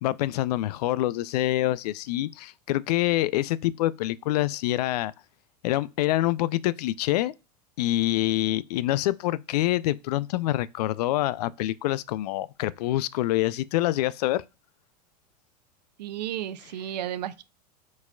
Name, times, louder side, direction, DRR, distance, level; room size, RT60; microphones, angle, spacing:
voice 1, 0.0-5.1 5.6-7.3 7.8-14.4, left 15 dB, 70° left, 0.4 m, -26 dB
voice 2, 16.0-17.4, right 11 dB, 80° right, 0.5 m, -33 dB
4.8 x 4.1 x 2.2 m
hypercardioid pair, 105°, 21 cm